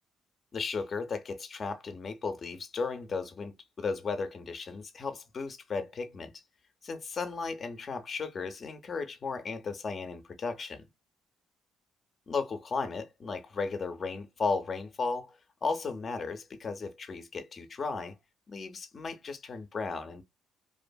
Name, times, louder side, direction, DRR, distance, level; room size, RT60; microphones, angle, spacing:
voice 1, 0.5-6.3 6.8-10.8 12.3-18.2 18.5-20.2, left 4 dB, 45° left, 0.5 m, -35 dB
2.5 x 2.4 x 2.2 m
supercardioid pair, 75°, 0 cm